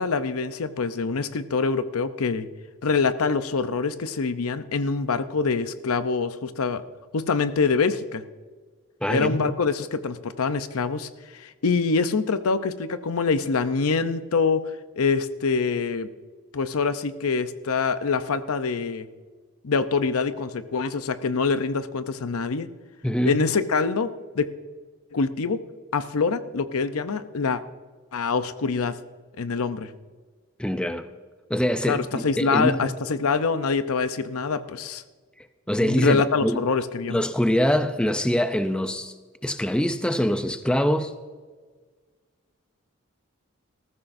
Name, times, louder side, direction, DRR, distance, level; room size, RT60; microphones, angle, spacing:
voice 1, 0.0-2.5 2.8-6.8 7.1-8.2 9.1-16.1 16.5-19.1 19.6-22.7 23.2-24.5 25.1-25.6 25.9-27.6 28.1-29.0 29.4-29.9 31.9-35.0 35.8-37.2, left 4 dB, 90° left, 0.7 m, -25 dB
voice 2, 9.0-9.5 23.0-23.4 30.6-31.1 31.5-32.9 35.7-36.6 37.1-39.1 39.4-41.1, equal, 5° left, 0.5 m, -24 dB
19.5 x 14.5 x 2.6 m
head